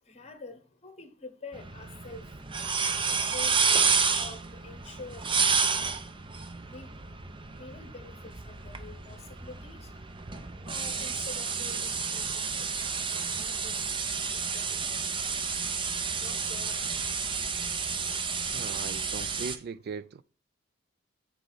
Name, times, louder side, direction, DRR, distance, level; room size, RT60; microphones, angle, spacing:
voice 1, 0.0-2.5 3.0-5.3 6.6-7.1 7.4-10.0 10.4-18.5, left 3 dB, 30° left, 1.2 m, -48 dB
sound 1, 1.5-19.6, right 5 dB, 25° right, 0.7 m, -30 dB
voice 2, 18.5-20.2, right 5 dB, 50° right, 0.3 m, -39 dB
7.7 x 4.4 x 6.4 m
head